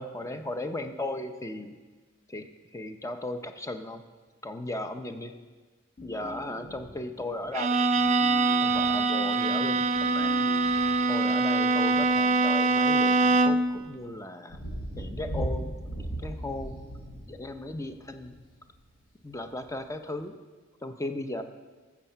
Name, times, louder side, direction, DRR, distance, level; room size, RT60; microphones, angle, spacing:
voice 1, 0.0-1.7 2.3-2.5 2.7-4.0 4.4-5.3 6.0-7.8 8.6-10.5 11.1-14.6 15.0-16.8 17.3-18.4 19.2-20.3 20.8-21.4, left 2 dB, 15° left, 7 dB, 0.6 m, -36 dB
sound 1, 6.0-7.1 7.9-9.1 9.9-11.0 11.9-12.5 13.2-13.8, left 1 dB, 40° left, 1.6 m, -46 dB
Bowed string instrument, 7.5-13.8, right 3 dB, 30° right, 0.3 m, -24 dB
Thunder, 14.5-18.4 19.7-19.8, right 1 dB, 80° left, 4.4 m, -36 dB
13.5 x 7.2 x 5.6 m, 1.3 s
head